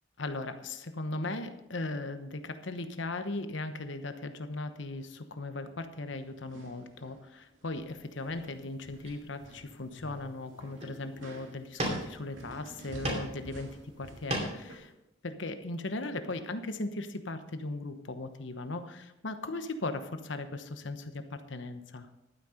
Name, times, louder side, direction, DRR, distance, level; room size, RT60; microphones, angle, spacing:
voice 1, 0.2-13.7 14.0-14.9 15.2-22.1, left 2 dB, 70° left, 9 dB, 1.0 m, -38 dB
sound 1, 6.0-7.2 7.5-7.9 8.2-14.7, right 1 dB, 80° right, 2.6 m, -50 dB
sound 2, 8.4-8.5 9.0-9.8 10.2-10.4 10.7-11.2 11.8-12.4 12.8-13.4 13.7-14.7, right 1 dB, 35° right, 2.7 m, -36 dB
11.5 x 9.5 x 5.1 m, 0.91 s
head